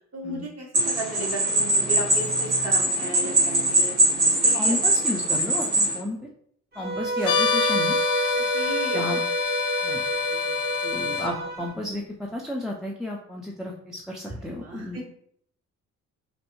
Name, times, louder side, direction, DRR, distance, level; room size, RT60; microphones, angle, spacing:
voice 1, 0.1-4.0 4.3-4.8 8.5-9.0 10.0-10.6 14.4-15.0, right 2 dB, 55° right, -1 dB, 1.0 m, -35 dB
sound 1, 0.7-6.0, right 1 dB, 90° right, 1.2 m, -22 dB
voice 2, 4.5-6.2 6.8-8.0 8.9-9.2 9.8-10.0 10.8-15.0, left 1 dB, ahead, -2 dB, 0.3 m, -32 dB
Bowed string instrument, 6.7-11.7, right 1 dB, 35° right, 0.7 m, -28 dB
sound 2, 7.2-11.3, left 8 dB, 80° left, 0.5 m, -27 dB
3.1 x 2.1 x 3.0 m, 0.64 s
cardioid pair, 90°, 30 cm